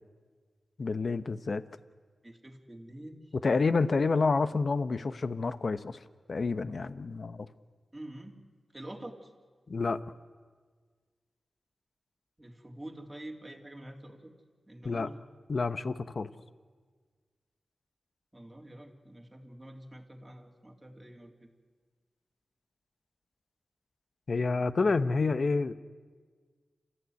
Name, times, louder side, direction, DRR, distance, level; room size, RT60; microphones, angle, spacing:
voice 1, 0.8-1.6 3.4-6.0 6.3-7.5 9.7-10.0 14.8-15.1 15.5-16.3 24.3-25.7, left 4 dB, 55° left, 13 dB, 0.9 m, -28 dB
voice 2, 2.2-3.3 7.9-8.4 8.7-9.3 12.4-14.3 14.7-15.2 18.3-21.5, right 1 dB, 15° right, 1 dB, 3.5 m, -46 dB
29.5 x 14.5 x 9.6 m, 1.5 s
cardioid pair, 65°, 0 cm